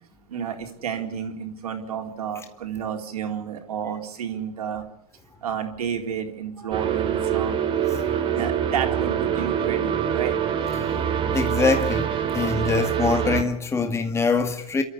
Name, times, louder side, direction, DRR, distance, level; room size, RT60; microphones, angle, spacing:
voice 1, 0.3-4.8 5.4-7.6 8.3-10.3, right 8 dB, 70° right, 4.1 m, -31 dB
sound 1, 6.7-13.4, right 9 dB, 25° right, 2.9 m, -25 dB
voice 2, 11.3-14.8, left 4 dB, 15° left, 2.1 m, -23 dB
30.0 x 13.5 x 8.4 m
hypercardioid pair, 100°, 20 cm